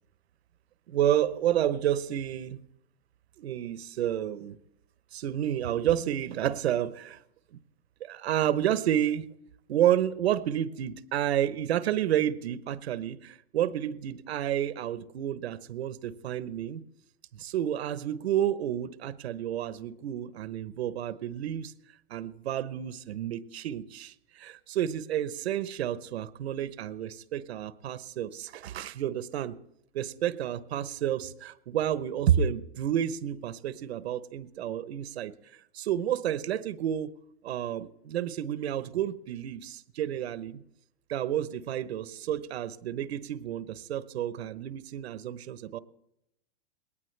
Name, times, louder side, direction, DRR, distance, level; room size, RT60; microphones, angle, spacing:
voice 1, 0.9-2.6 3.4-4.6 5.1-7.2 7.5-7.6 8.0-9.3 9.7-16.8 17.3-21.7 22.1-29.6 29.9-35.3 35.7-37.1 37.4-40.6 41.1-45.8, right 10 dB, 80° right, 14 dB, 1.0 m, -30 dB
21.0 x 18.5 x 3.3 m, 0.81 s
supercardioid pair, 180°, 31 cm